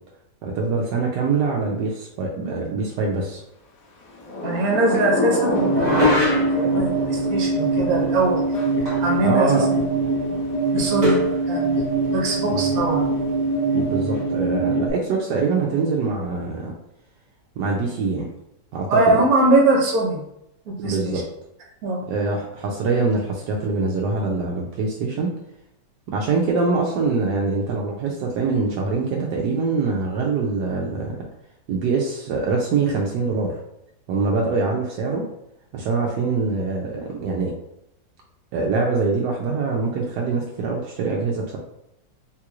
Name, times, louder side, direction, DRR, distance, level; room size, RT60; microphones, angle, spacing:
voice 1, 0.4-3.4 9.2-9.6 12.5-12.7 13.7-16.7 17.6-18.3 18.7-19.2 20.8-21.2 22.1-25.3 26.1-31.2 31.7-33.6 34.1-35.3 35.7-37.5 38.5-41.6, right 4 dB, 85° right, -1 dB, 1.2 m, -24 dB
Thunder / Rain, 4.0-14.6, left 3 dB, 85° left, 1.4 m, -32 dB
voice 2, 4.4-8.4 9.0-9.7 10.7-11.8 12.1-13.0 18.9-20.2 20.7-21.2 21.8-22.0, right 2 dB, 65° right, -1 dB, 1.4 m, -22 dB
sound 1, 5.5-14.9, right 3 dB, 55° left, 0.3 m, -23 dB
sound 2, 5.7-6.7 8.9-9.2 9.5-9.6 11.0-11.4, left 1 dB, 35° right, 0.8 m, -22 dB
3.8 x 2.9 x 2.4 m, 0.81 s
omnidirectional pair, 1.7 m